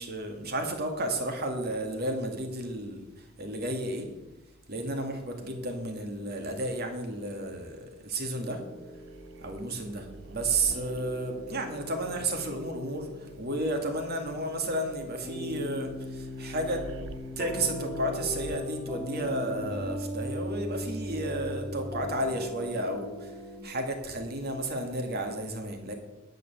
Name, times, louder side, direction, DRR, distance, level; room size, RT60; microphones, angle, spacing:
voice 1, 0.0-4.1 4.7-8.6 9.4-16.8 17.4-25.9, right 1 dB, 50° right, 4 dB, 1.9 m, -32 dB
sound 1, 8.3-23.6, left 1 dB, 10° left, 2.2 m, -39 dB
sound 2, 8.9-22.3, right 3 dB, 65° right, 0.8 m, -50 dB
10.5 x 6.8 x 7.1 m, 1.0 s
head